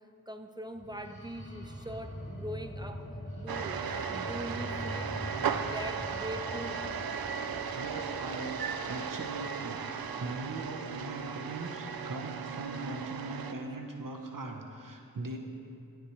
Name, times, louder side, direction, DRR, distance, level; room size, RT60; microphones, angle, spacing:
voice 1, 0.3-3.0 3.3-6.9, equal, 10° right, 6 dB, 0.8 m, -42 dB
sound 1, 0.7-10.5, equal, 30° left, 3.3 m, -44 dB
sound 2, 3.5-13.5, right 6 dB, 90° right, 0.6 m, -36 dB
voice 2, 7.7-8.6 8.9-15.4, right 2 dB, 65° right, 2 dB, 1.1 m, -40 dB
17.0 x 11.5 x 3.3 m, 2.6 s
wide cardioid pair, 50°, 35 cm